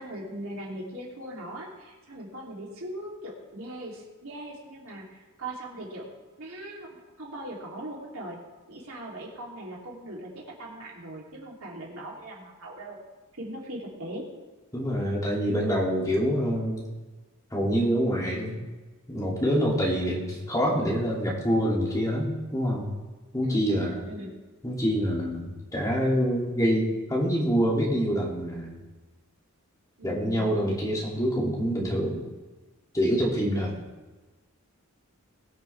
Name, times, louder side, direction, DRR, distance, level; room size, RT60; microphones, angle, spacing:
voice 1, 0.0-6.1 6.4-6.9 7.2-8.4 8.7-13.0 13.3-14.3 23.4-24.4 30.0-30.6 33.3-33.8, right 1 dB, 75° right, -3 dB, 3.2 m, -39 dB
voice 2, 14.7-16.8 17.5-18.6 19.1-22.9 23.3-24.0 24.6-28.8 30.0-32.2 32.9-33.8, equal, 15° left, -4 dB, 2.7 m, -26 dB
21.0 x 7.4 x 3.5 m, 1.2 s
head